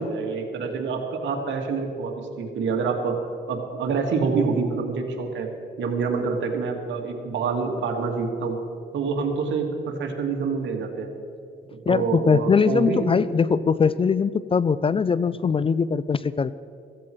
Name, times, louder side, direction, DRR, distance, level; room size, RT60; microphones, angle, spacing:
voice 1, 0.0-3.2 3.5-5.5 5.8-8.6 8.9-11.1 11.9-13.1, right 4 dB, 70° right, 2 dB, 2.2 m, -26 dB
voice 2, 11.9-16.6, left 5 dB, 30° left, 17 dB, 0.4 m, -21 dB
15.5 x 15.0 x 4.6 m, 2.4 s
cardioid pair, 90°, 20 cm